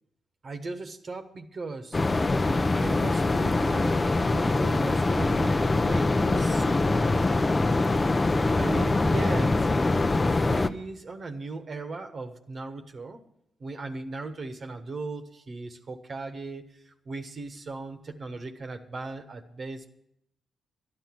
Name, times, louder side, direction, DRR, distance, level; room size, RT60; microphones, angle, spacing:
voice 1, 0.4-2.0 2.7-4.0 4.2-7.2 8.6-13.2 13.6-19.9, right 3 dB, 50° right, 7 dB, 1.3 m, -38 dB
sound 1, 1.9-10.7, left 2 dB, 30° left, 0.7 m, -24 dB
12.0 x 11.0 x 6.0 m, 0.76 s
hypercardioid pair, 40°, 0 cm